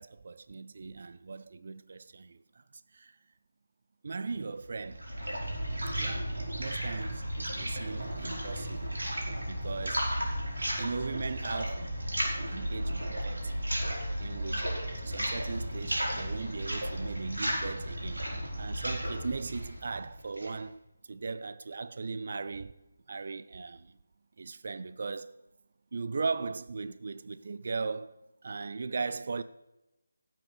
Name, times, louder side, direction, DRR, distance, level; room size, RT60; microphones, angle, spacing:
voice 1, 0.0-2.6 2.9-3.2 4.0-5.0 6.0-9.0 9.4-10.1 10.8-11.9 12.5-13.5 14.2-14.7 15.0-18.3 18.6-20.8 21.1-22.7 23.1-24.0 24.4-25.3 25.9-29.4, right 4 dB, 50° right, 0.5 m, -38 dB
sound 1, 4.6-20.6, equal, 75° right, 4.9 m, -34 dB
16.5 x 7.5 x 5.1 m
figure-of-eight pair, 155°, 0 cm